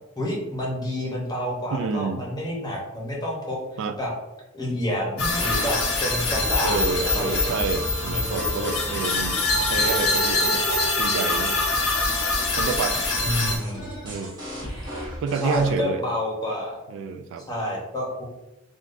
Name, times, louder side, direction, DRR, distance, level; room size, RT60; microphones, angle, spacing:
voice 1, 0.2-4.1 4.5-7.5 8.0-8.7 13.2-13.9 15.4-16.8 17.5-18.2, equal, 20° left, -3 dB, 0.8 m, -29 dB
voice 2, 1.7-2.2 3.8-4.0 6.6-10.6 11.0-11.6 12.6-13.1 14.0-14.4 15.2-16.0 16.9-17.4, right 4 dB, 65° right, 10 dB, 0.3 m, -28 dB
sound 1, 5.2-13.6, left 2 dB, 75° left, 0.8 m, -24 dB
sound 2, 5.3-15.7, equal, 20° right, 1.0 m, -36 dB
3.6 x 2.4 x 2.5 m, 0.96 s
head